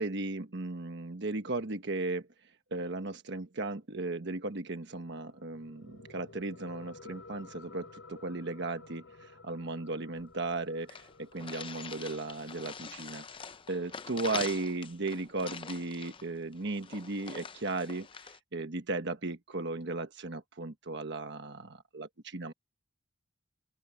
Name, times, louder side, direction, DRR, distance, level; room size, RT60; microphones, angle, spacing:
voice 1, 0.0-22.5, right 2 dB, 60° right, 1.3 m, -36 dB
sound 1, 5.1-16.1, left 3 dB, 75° left, 4.5 m, -54 dB
sound 2, 10.2-10.3 10.5-10.6 10.9-18.4, left 6 dB, 25° left, 0.6 m, -44 dB
open air
head